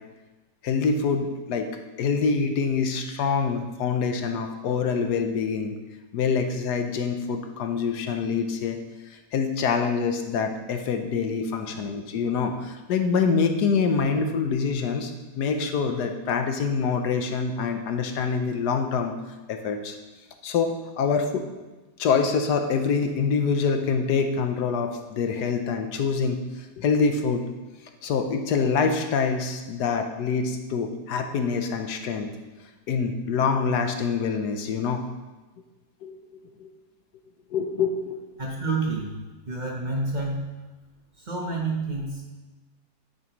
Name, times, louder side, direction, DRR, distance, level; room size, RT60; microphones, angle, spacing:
voice 1, 0.6-1.7 2.0-5.7 6.1-8.8 9.1-19.1 19.5-20.0 20.4-21.4 22.0-27.5 28.0-32.3 32.9-35.0 36.0-36.7 37.5-38.2, left 5 dB, 80° left, 5 dB, 1.3 m, -25 dB
voice 2, 38.4-39.1 39.5-40.5 41.2-42.4, right 3 dB, 30° right, -2 dB, 1.2 m, -29 dB
9.4 x 8.7 x 3.1 m, 1.2 s
omnidirectional pair, 1.8 m